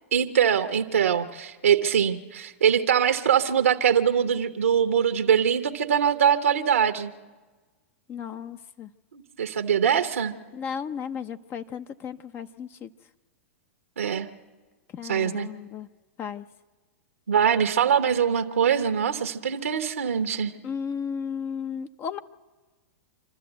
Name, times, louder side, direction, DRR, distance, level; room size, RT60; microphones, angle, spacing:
voice 1, 0.1-7.1 9.1-10.3 14.0-14.3 15.1-15.5 17.3-20.5, right 8 dB, 85° right, 8 dB, 1.0 m, -23 dB
voice 2, 8.1-8.9 10.5-12.9 14.9-15.9 16.2-16.5 20.6-22.2, left 7 dB, 30° left, 11 dB, 0.6 m, -34 dB
26.5 x 12.5 x 8.0 m, 1.3 s
hypercardioid pair, 110°, 7 cm